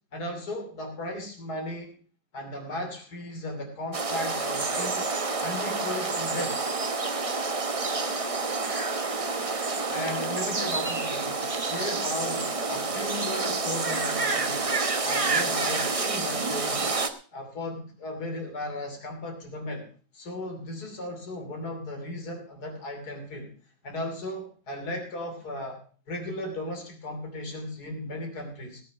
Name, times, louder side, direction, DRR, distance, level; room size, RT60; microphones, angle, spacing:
voice 1, 0.1-1.9 2.3-5.1 5.4-6.6 9.9-14.7 15.0-16.9 17.3-19.9 20.1-23.5 23.8-25.8 26.1-28.8, left 1 dB, 65° left, 3 dB, 3.5 m, -36 dB
sound 1, 3.9-17.1, right 3 dB, 25° right, 0.8 m, -28 dB
18.0 x 7.0 x 6.0 m, 0.40 s
omnidirectional pair, 1.8 m